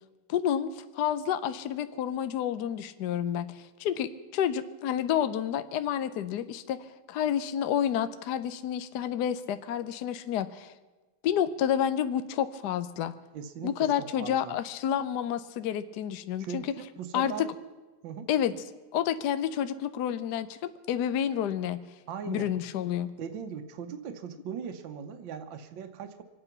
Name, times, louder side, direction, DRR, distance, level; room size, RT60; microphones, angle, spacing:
voice 1, 0.3-6.8 7.1-10.7 11.2-13.1 13.6-16.7 17.1-17.5 18.3-18.5 18.9-21.8 22.3-23.1, left 9 dB, 65° left, 11 dB, 1.1 m, -29 dB
voice 2, 13.3-13.7 14.0-14.6 16.4-17.5 18.0-18.3 22.1-22.5 23.2-26.2, right 7 dB, 70° right, 6 dB, 1.5 m, -39 dB
26.0 x 8.9 x 5.8 m, 1.2 s
omnidirectional pair, 2.3 m